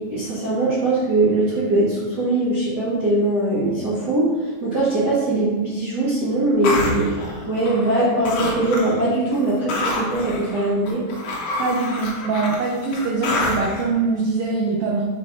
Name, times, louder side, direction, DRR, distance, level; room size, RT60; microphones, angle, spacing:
voice 1, 0.1-4.3 4.6-7.1 7.5-11.0, right 2 dB, 45° right, -10 dB, 1.4 m, -21 dB
sound 1, 6.6-8.0 8.2-9.0 9.3-13.8, left 2 dB, 80° left, 1.2 m, -27 dB
voice 2, 11.6-15.0, right 4 dB, 85° right, -2 dB, 1.5 m, -23 dB
7.3 x 5.9 x 2.7 m, 1.3 s
omnidirectional pair, 4.2 m